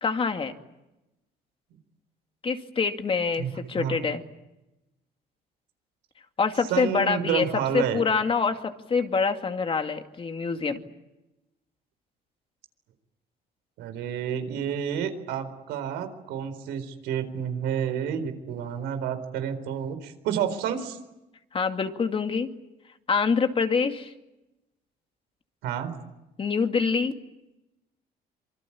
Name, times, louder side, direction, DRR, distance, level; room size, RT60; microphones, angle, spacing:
voice 1, 0.0-0.5 2.4-4.2 6.4-7.5 7.7-10.8 21.5-22.5 23.1-24.1 26.4-27.2, left 5 dB, 30° left, 6 dB, 2.4 m, -25 dB
voice 2, 6.7-8.0 13.8-21.0 25.6-25.9, right 8 dB, 90° right, 9 dB, 4.1 m, -30 dB
26.0 x 24.5 x 8.7 m, 0.96 s
cardioid pair, 110°, 17 cm